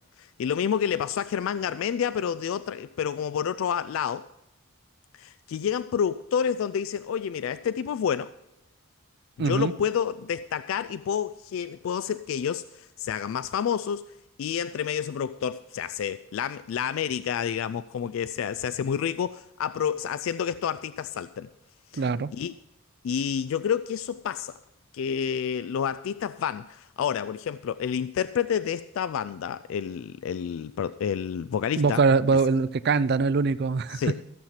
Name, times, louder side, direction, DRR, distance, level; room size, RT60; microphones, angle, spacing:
voice 1, 0.2-4.3 5.1-8.3 9.4-14.0 14.4-21.5 21.9-22.0 22.3-22.5 23.0-24.6 24.9-32.0 33.9-34.1, left 8 dB, 70° left, 0.3 m, -29 dB
voice 2, 9.4-9.7 21.9-22.3 31.8-34.2, right 4 dB, 50° right, 0.4 m, -23 dB
14.5 x 7.4 x 5.7 m
head